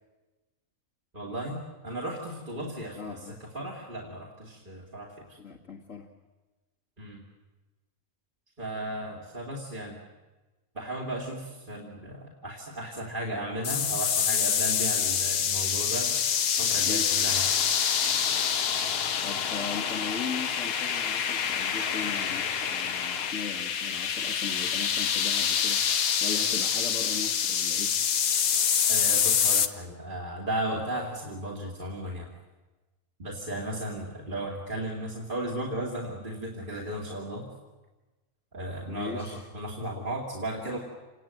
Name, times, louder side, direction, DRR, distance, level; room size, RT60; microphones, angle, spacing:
voice 1, 1.1-5.4 7.0-7.2 8.6-10.0 10.7-16.2 16.6-17.5 28.9-32.3 33.2-37.5 38.5-40.8, right 1 dB, 35° right, -2 dB, 2.8 m, -35 dB
voice 2, 3.0-3.4 5.4-6.1 16.8-17.1 19.2-25.8 26.2-27.9 38.9-39.5, left 5 dB, 65° left, -2 dB, 2.1 m, -38 dB
sound 1, 13.6-29.7, left 7 dB, 85° left, 1.6 m, -26 dB
sound 2, 17.2-23.3, left 6 dB, 50° left, 1.1 m, -38 dB
28.0 x 19.0 x 9.0 m, 1.2 s
omnidirectional pair, 1.5 m